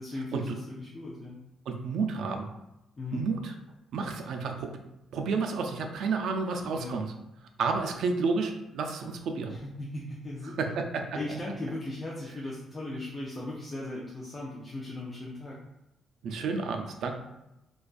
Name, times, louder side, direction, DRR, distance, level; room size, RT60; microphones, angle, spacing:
voice 1, 0.0-1.4 3.0-3.2 6.7-7.0 9.5-10.5 11.1-15.6, left 2 dB, 25° left, -4 dB, 0.4 m, -38 dB
voice 2, 1.7-2.5 3.1-3.5 3.9-4.8 5.1-7.1 7.6-9.5 10.6-11.1 16.2-17.1, right 4 dB, 75° right, 4 dB, 0.3 m, -30 dB
2.5 x 2.2 x 2.3 m, 0.92 s
cardioid pair, 90°, 0 cm